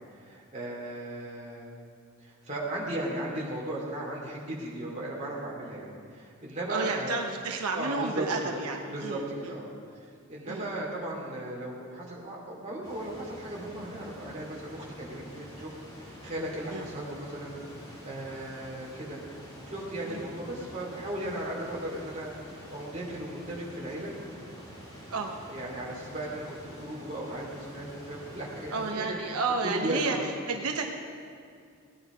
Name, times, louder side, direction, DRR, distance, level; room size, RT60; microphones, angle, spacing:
voice 1, 0.1-1.7 2.2-7.2 7.7-9.7 9.9-15.7 16.0-17.5 18.0-19.2 19.6-22.4 22.7-24.1 25.5-29.4 29.6-30.2, right 1 dB, 30° right, -4 dB, 2.8 m, -36 dB
voice 2, 6.7-9.6 10.5-10.7 16.7-16.9 20.1-20.3 25.1-25.4 28.7-30.2 30.5-30.9, right 4 dB, 85° right, 2 dB, 1.0 m, -31 dB
sound 1, 12.8-28.9, equal, 15° left, 2.7 m, -47 dB
18.0 x 9.8 x 5.1 m, 2.3 s
head